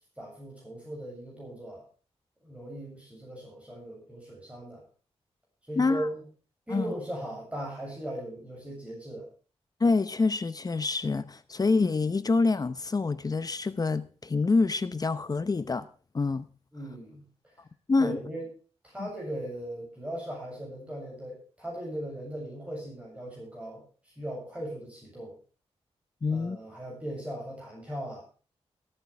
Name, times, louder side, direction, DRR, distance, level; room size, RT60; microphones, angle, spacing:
voice 1, 0.2-1.8 2.4-4.8 5.7-6.2 6.7-9.3 16.7-17.5 18.0-18.5 18.8-25.4 26.3-28.2, right 1 dB, 10° right, 7.7 m, -38 dB
voice 2, 5.7-6.1 6.7-6.9 9.8-15.9 16.1-16.5 17.9-18.2 19.0-19.1 26.2-26.6, left 3 dB, 35° left, 0.8 m, -26 dB
22.0 x 9.0 x 3.4 m
cardioid pair, 90°, 11 cm